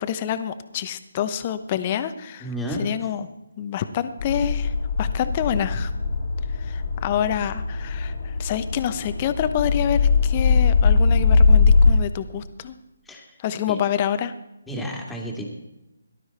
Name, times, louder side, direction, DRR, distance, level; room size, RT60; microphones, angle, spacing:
voice 1, 0.0-2.5 2.8-3.3 3.6-5.9 6.5-12.8 13.4-14.3, left 9 dB, 30° left, 11 dB, 1.0 m, -27 dB
voice 2, 2.4-2.9 13.1-13.2 13.7-13.8 14.7-15.5, equal, 5° left, -1 dB, 2.4 m, -31 dB
sound 1, 4.2-11.9, left 4 dB, 50° left, 1.8 m, -20 dB
18.0 x 12.0 x 4.3 m, 0.97 s
figure-of-eight pair, 145°, 0 cm